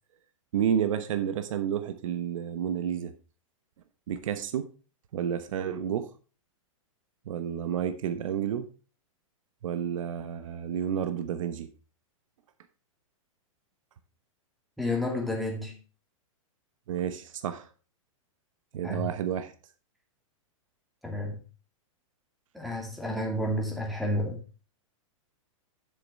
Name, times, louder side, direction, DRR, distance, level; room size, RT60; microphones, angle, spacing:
voice 1, 0.5-3.1 4.1-4.7 5.1-6.1 7.3-8.7 9.6-11.7 16.9-17.7 18.7-19.5, right 9 dB, 70° right, 10 dB, 1.0 m, -30 dB
voice 2, 14.8-15.8 18.8-19.1 21.0-21.4 22.5-24.4, left 1 dB, ahead, -1 dB, 2.3 m, -30 dB
7.3 x 6.9 x 4.6 m, 0.35 s
hypercardioid pair, 140°, 17 cm